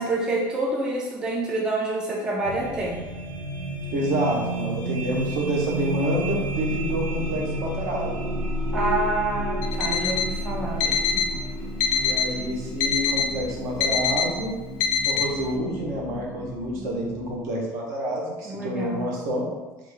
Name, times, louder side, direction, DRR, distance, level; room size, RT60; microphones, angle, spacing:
voice 1, 0.0-3.0 8.7-11.0 18.4-19.0, right 2 dB, 10° right, -2 dB, 0.3 m, -27 dB
sound 1, 2.4-16.4, right 1 dB, 85° right, 0.7 m, -31 dB
voice 2, 3.9-8.1 11.9-14.5 15.0-19.4, right 1 dB, 50° right, -2 dB, 0.8 m, -28 dB
sound 2, 6.0-17.3, right 2 dB, 25° right, 0.9 m, -40 dB
Alarm, 9.6-10.3 10.8-11.3 11.8-12.3 12.8-13.3 13.8-14.3 14.8-15.3, left 6 dB, 80° left, 0.4 m, -24 dB
3.4 x 2.4 x 3.2 m, 1.2 s
cardioid pair, 180°, 7 cm